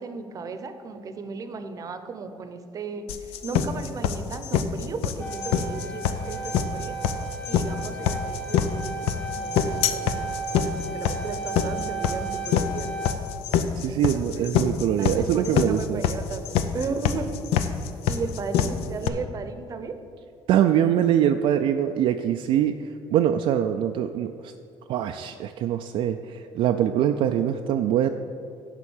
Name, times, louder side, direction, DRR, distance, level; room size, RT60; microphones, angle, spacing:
voice 1, 0.0-3.1 3.4-10.3 10.6-12.9 13.9-14.5 15.0-16.5 16.7-17.3 18.1-20.0, right 4 dB, 35° right, 9 dB, 0.7 m, -35 dB
sound 1, 3.1-19.1, left 9 dB, 80° left, 0.6 m, -25 dB
sound 2, 5.2-13.1, right 4 dB, 20° left, 1.1 m, -34 dB
voice 2, 13.8-16.0 20.5-22.7 23.1-24.5 24.9-28.1, right 10 dB, 65° right, 6 dB, 0.4 m, -23 dB
10.5 x 3.7 x 7.2 m, 2.3 s
cardioid pair, 120°, 10 cm